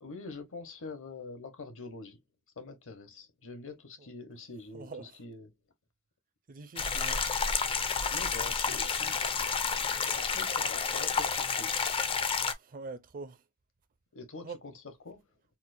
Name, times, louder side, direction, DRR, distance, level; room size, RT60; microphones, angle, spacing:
voice 1, 0.0-2.2 2.6-5.5 8.1-9.5 9.8-11.7 14.1-14.7 15.0-15.3, left 3 dB, 65° left, 1.0 m, -45 dB
voice 2, 4.7-5.2 6.5-7.2 12.5-13.4 14.4-14.6, right 4 dB, 40° right, 0.5 m, -43 dB
sound 1, 6.8-12.5, left 5 dB, 25° left, 0.4 m, -30 dB
4.3 x 2.1 x 2.5 m
head